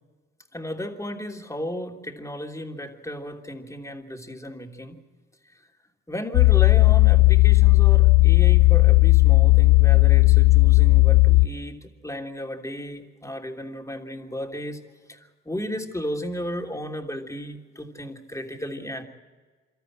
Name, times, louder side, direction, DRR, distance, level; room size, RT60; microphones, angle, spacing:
voice 1, 0.5-5.0 5.5-5.6 6.1-14.8 15.1-19.0, equal, 10° left, 2 dB, 3.1 m, -34 dB
sound 1, 6.3-11.5, left 23 dB, 80° left, 0.6 m, -15 dB
25.5 x 13.0 x 8.8 m, 1.4 s
hypercardioid pair, 50°, 33 cm